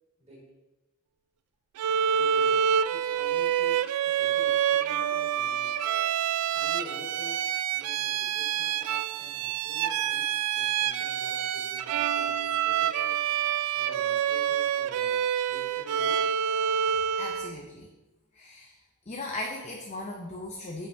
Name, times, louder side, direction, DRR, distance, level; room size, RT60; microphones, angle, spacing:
Bowed string instrument, 1.8-17.6, right 9 dB, 85° right, 0.3 m, -27 dB
voice 1, 2.1-2.6 2.9-3.8 4.0-5.9 6.5-7.4 7.7-10.2 10.5-13.1 13.7-16.4, left 1 dB, 30° right, -5 dB, 2.6 m, -48 dB
voice 2, 17.2-17.9 18.3-18.7 19.1-20.9, left 2 dB, 30° left, 0 dB, 0.6 m, -37 dB
9.5 x 5.7 x 2.7 m, 1.1 s
head